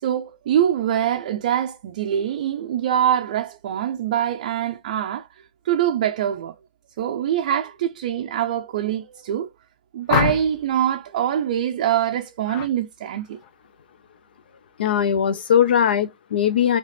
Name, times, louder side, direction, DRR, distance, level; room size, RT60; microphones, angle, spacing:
voice 1, 0.0-5.3 5.6-6.5 7.0-9.5 9.9-13.4, right 10 dB, 45° right, 0.4 m, -24 dB
sound 1, 10.1-10.7 12.5-12.7 13.1-13.5, left 7 dB, 25° left, 0.5 m, -25 dB
voice 2, 14.8-16.8, left 9 dB, 75° left, 0.4 m, -20 dB
3.2 x 2.9 x 4.0 m
hypercardioid pair, 170°, 5 cm